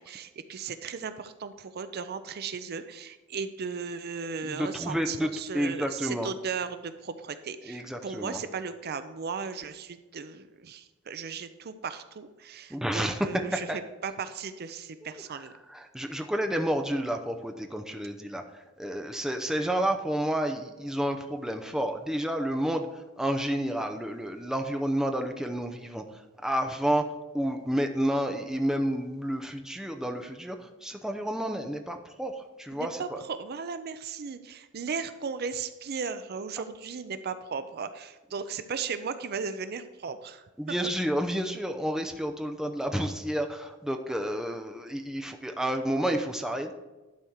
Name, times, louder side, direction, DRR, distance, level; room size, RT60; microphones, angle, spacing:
voice 1, 0.0-15.5 32.7-40.5, right 5 dB, 50° right, 11 dB, 0.5 m, -36 dB
voice 2, 4.4-5.3 5.5-6.3 7.7-8.4 12.7-13.2 13.5-13.8 15.0-15.2 15.7-18.4 18.8-22.9 23.2-26.0 26.4-27.0 27.3-33.2 40.6-46.8, right 1 dB, 5° right, 4 dB, 0.7 m, -30 dB
11.5 x 4.4 x 6.4 m, 1.1 s
head